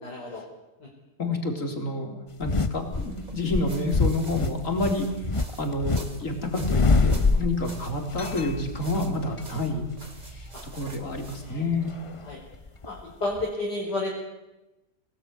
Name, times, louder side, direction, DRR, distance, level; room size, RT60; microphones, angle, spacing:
voice 1, 0.0-0.4 0.8-0.9 10.5-10.6 11.0-11.1 11.4-11.6 12.2-12.4 12.9-14.2, left 2 dB, 80° left, -3 dB, 5.4 m, -32 dB
voice 2, 1.2-2.1 2.4-5.1 5.6-9.8 10.3-11.9, left 2 dB, 50° left, 4 dB, 4.1 m, -29 dB
sound 1, 2.4-3.1 3.5-6.0 6.3-7.8 8.1-9.4 9.8-10.0 11.7-13.0 13.4-13.5, left 4 dB, 30° left, 0.6 m, -24 dB
sound 2, 2.9-11.6, right 2 dB, 25° right, 2.6 m, -43 dB
27.5 x 18.0 x 9.6 m, 1.0 s
omnidirectional pair, 1.8 m